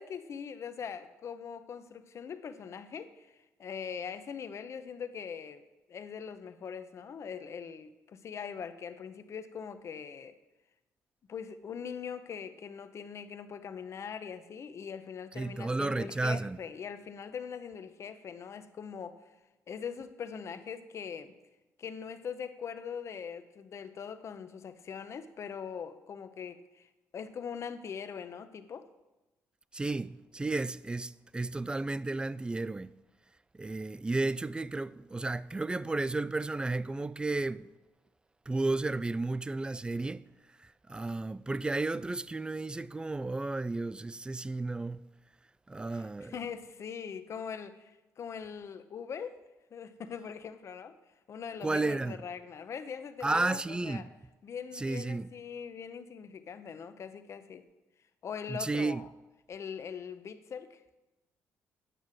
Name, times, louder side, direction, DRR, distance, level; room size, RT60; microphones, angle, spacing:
voice 1, 0.0-5.6 5.9-10.3 11.3-19.2 19.7-21.3 21.8-26.9 27.1-28.8 45.9-49.4 49.7-50.9 51.3-54.1 54.4-57.6 58.2-59.1 59.5-61.0, left 7 dB, 50° left, 0.8 m, -42 dB
voice 2, 15.3-16.6 29.7-32.9 33.5-37.7 38.5-40.2 40.6-45.1 45.7-46.4 51.6-52.2 53.2-54.1 54.7-55.3 58.5-59.0, right 2 dB, 15° right, 0.3 m, -33 dB
9.3 x 6.2 x 7.5 m
cardioid pair, 85°, 6 cm